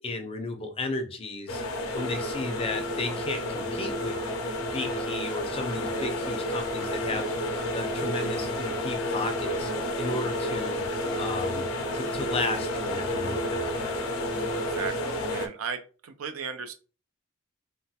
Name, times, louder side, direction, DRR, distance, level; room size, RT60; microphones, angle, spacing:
voice 1, 0.0-1.6 1.9-4.1 4.6-9.7 10.0-10.8 11.1-11.7 11.9-14.0, left 2 dB, 30° left, 6 dB, 0.5 m, -34 dB
sound 1, 1.5-15.5, left 1 dB, 75° left, 0.5 m, -31 dB
sound 2, 2.0-15.0, equal, 70° right, 1.4 m, -38 dB
voice 2, 14.5-16.7, right 6 dB, 85° right, 8 dB, 0.5 m, -36 dB
3.0 x 2.1 x 2.8 m, 0.36 s
head